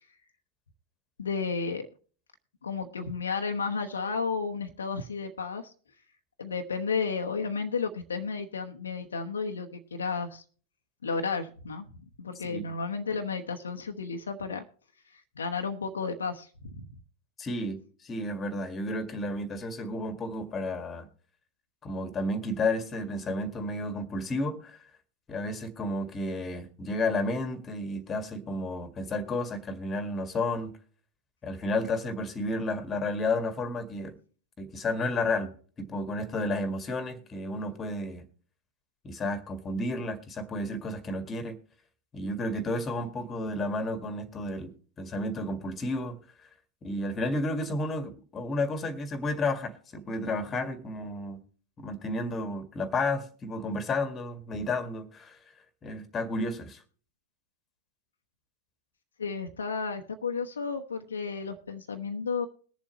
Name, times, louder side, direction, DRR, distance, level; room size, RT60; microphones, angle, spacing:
voice 1, 1.2-1.9 2.6-5.7 6.4-10.4 11.0-11.9 12.2-14.6 15.1-16.9 59.2-62.5, left 5 dB, 70° left, 1.0 m, -32 dB
voice 2, 17.4-21.1 21.8-24.8 25.3-30.7 31.4-34.2 34.6-38.2 39.0-41.6 42.1-46.2 46.8-51.4 51.8-55.4 55.8-56.8, left 2 dB, 20° left, 1.8 m, -32 dB
21.5 x 7.3 x 3.0 m
figure-of-eight pair, 90°, 0 cm